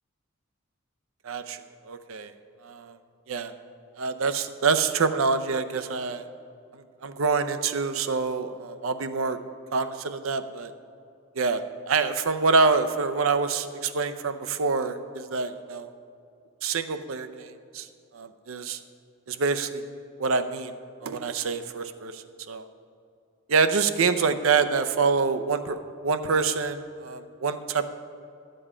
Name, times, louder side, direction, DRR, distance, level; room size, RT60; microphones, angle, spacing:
voice 1, 1.2-1.6 1.9-2.3 2.6-3.0 3.3-3.5 4.0-6.2 7.0-9.4 9.7-10.7 11.4-15.9 16.6-17.9 18.1-18.8 19.3-19.8 20.2-20.7 21.0-22.7 23.5-25.8 26.0-27.8, right 4 dB, 85° right, 9 dB, 0.6 m, -26 dB
12.0 x 7.7 x 4.9 m, 2.5 s
head